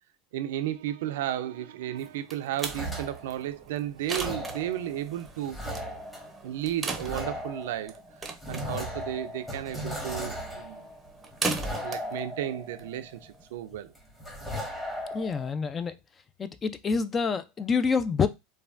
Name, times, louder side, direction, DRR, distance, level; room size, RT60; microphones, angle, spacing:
voice 1, 0.3-5.6 6.4-10.8 11.8-13.9, right 12 dB, 75° right, 0.4 m, -33 dB
sound 1, 2.0-13.4, right 3 dB, 20° right, 0.6 m, -38 dB
Coathanger + bare hands on metal fan cage, 2.6-3.6 4.0-13.5 13.9-15.5, equal, 10° left, 1.2 m, -37 dB
voice 2, 15.1-15.9 16.4-18.3, left 5 dB, 30° left, 0.4 m, -27 dB
3.2 x 2.2 x 2.4 m
hypercardioid pair, 95°, 0 cm